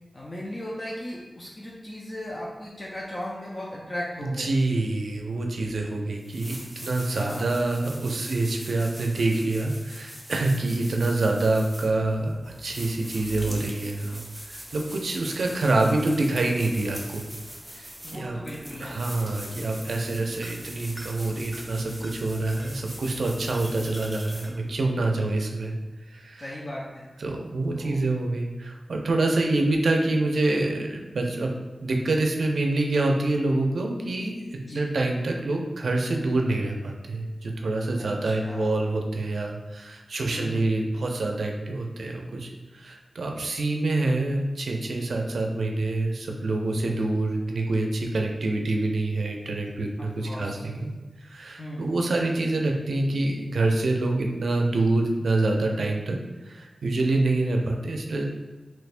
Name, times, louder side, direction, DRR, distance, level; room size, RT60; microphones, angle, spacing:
voice 1, 0.1-4.5 7.1-7.5 18.0-19.0 26.4-27.1 27.7-28.0 34.6-34.9 38.2-38.7 40.2-40.6 50.0-50.6 51.6-51.8, left 1 dB, 40° left, -5 dB, 0.5 m, -36 dB
voice 2, 4.2-14.2 14.5-17.3 17.7-18.4 18.8-25.7 26.1-26.4 27.2-31.5 31.8-50.9 51.2-56.2 56.5-58.2, right 2 dB, 90° right, 1 dB, 0.4 m, -26 dB
sound 1, 6.2-24.9, equal, 5° right, 0.6 m, -42 dB
3.3 x 3.1 x 2.5 m, 1.2 s
wide cardioid pair, 105°, 0 cm